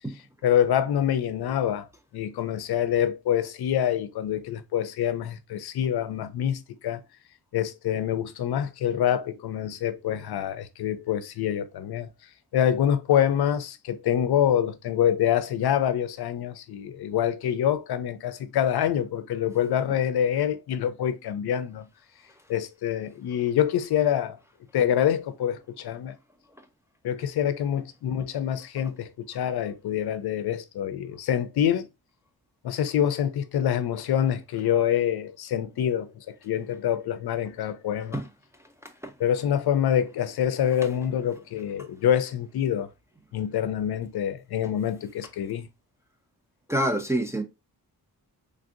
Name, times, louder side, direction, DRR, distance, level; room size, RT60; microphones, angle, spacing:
voice 1, 0.4-1.9 2.1-7.0 7.5-12.1 12.5-21.9 22.5-24.4 24.7-26.2 27.0-31.9 32.6-38.2 39.2-42.9 43.3-45.7, left 10 dB, 90° left, 0.5 m, -26 dB
voice 2, 46.7-47.4, right 1 dB, 10° right, 0.3 m, -27 dB
3.3 x 2.6 x 2.4 m
wide cardioid pair, 145°, 37 cm